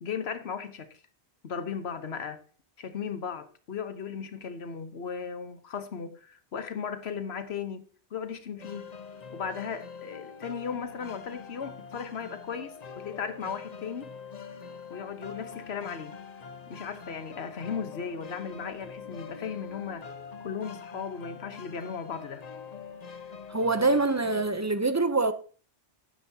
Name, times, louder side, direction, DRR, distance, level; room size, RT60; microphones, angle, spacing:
voice 1, 0.0-1.0 1.4-2.4 2.8-7.8 8.1-8.9 9.3-14.1 14.9-16.2 16.7-20.1 20.4-22.4, left 6 dB, 70° left, 1.3 m, -36 dB
sound 1, 8.6-24.5, left 6 dB, 40° left, 1.0 m, -44 dB
voice 2, 23.5-25.3, right 3 dB, 20° right, 0.5 m, -25 dB
11.5 x 10.5 x 2.8 m
omnidirectional pair, 1.1 m